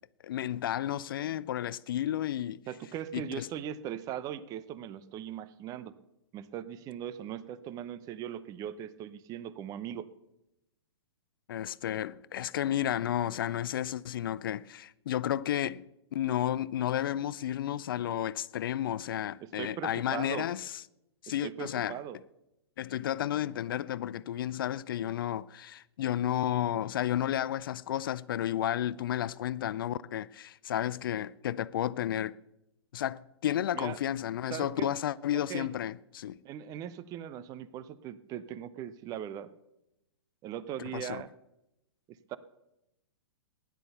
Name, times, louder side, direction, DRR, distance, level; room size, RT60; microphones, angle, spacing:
voice 1, 0.2-2.6 3.1-3.5 11.5-15.8 16.1-20.8 21.2-22.0 22.8-32.4 32.9-36.4 40.9-41.2, left 11 dB, 50° left, 0.4 m, -32 dB
voice 2, 2.7-5.9 6.3-10.1 19.4-20.5 21.4-22.2 33.7-34.0 34.5-34.9 35.3-35.7 36.4-39.5 40.4-41.3 42.3-42.4, right 10 dB, 25° right, 0.7 m, -39 dB
16.0 x 10.5 x 6.8 m
figure-of-eight pair, 115°, 14 cm